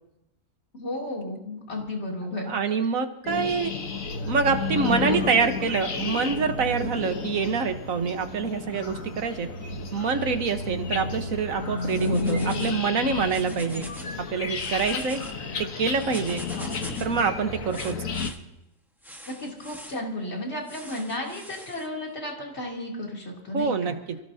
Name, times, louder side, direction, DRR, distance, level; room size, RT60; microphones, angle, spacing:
voice 1, 0.7-2.5 14.9-15.0 16.5-16.7 19.3-24.0, left 1 dB, 50° left, -2 dB, 3.3 m, -33 dB
voice 2, 2.5-3.7 4.3-9.5 9.9-13.9 14.2-15.2 15.6-16.4 17.0-18.0 23.5-24.2, right 5 dB, 80° right, 7 dB, 1.6 m, -26 dB
sound 1, 3.2-18.3, left 3 dB, 80° left, 1.6 m, -31 dB
sound 2, 11.8-12.8 13.2-14.1 14.4-15.3 16.0-17.2 17.7-18.4 19.0-20.0 20.6-21.9, equal, ahead, 1.3 m, -43 dB
27.5 x 17.0 x 2.8 m, 0.89 s
omnidirectional pair, 1.4 m